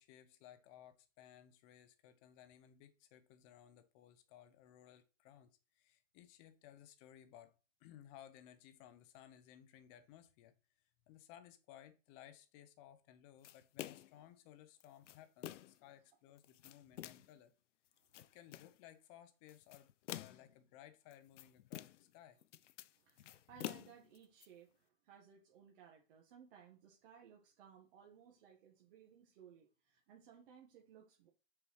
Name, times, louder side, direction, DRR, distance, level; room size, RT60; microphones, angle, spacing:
voice 1, 0.0-10.5 11.1-17.5 18.2-22.4, left 11 dB, 25° left, 0.8 m, -60 dB
sound 1, 13.4-14.2 14.8-15.8 16.4-17.4 17.9-18.8 19.5-20.5 21.1-22.1 22.4-24.5, left 13 dB, 70° left, 0.6 m, -49 dB
voice 2, 22.8-31.3, right 8 dB, 45° right, 1.6 m, -61 dB
6.7 x 4.6 x 6.3 m
hypercardioid pair, 160°, 38 cm